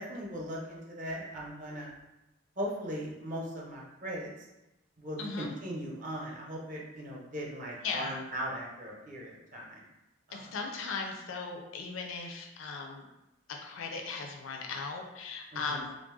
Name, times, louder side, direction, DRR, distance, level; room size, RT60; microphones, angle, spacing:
voice 1, 0.0-1.9 2.6-4.3 5.0-9.8 10.3-10.6 15.5-15.9, equal, 40° right, -3 dB, 0.7 m, -39 dB
voice 2, 7.8-8.2 10.3-13.0 13.6-15.9, left 4 dB, 80° left, 1 dB, 0.5 m, -37 dB
3.2 x 2.5 x 3.6 m, 0.95 s
head